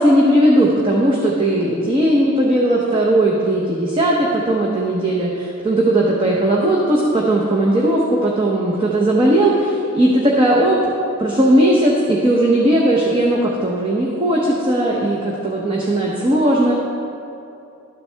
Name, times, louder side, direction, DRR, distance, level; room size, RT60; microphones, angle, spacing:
voice 1, 0.0-10.8 11.2-16.7, right 1 dB, 25° right, -3 dB, 0.8 m, -17 dB
12.5 x 7.4 x 3.3 m, 2.7 s
head